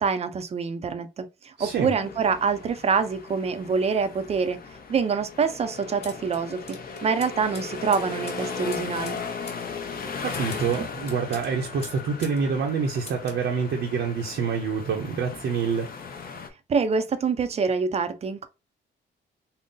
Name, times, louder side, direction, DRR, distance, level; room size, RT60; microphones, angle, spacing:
voice 1, 0.0-4.6 4.9-9.2 16.7-18.5, right 5 dB, 35° right, 0.4 m, -26 dB
sound 1, 1.6-16.5, left 5 dB, 50° left, 0.6 m, -37 dB
voice 2, 1.6-1.9 10.2-15.9, right 6 dB, 70° right, 0.7 m, -27 dB
sound 2, 6.0-12.4 12.7-13.4, left 3 dB, 30° left, 1.1 m, -45 dB
3.8 x 2.0 x 3.8 m
wide cardioid pair, 150°, 20 cm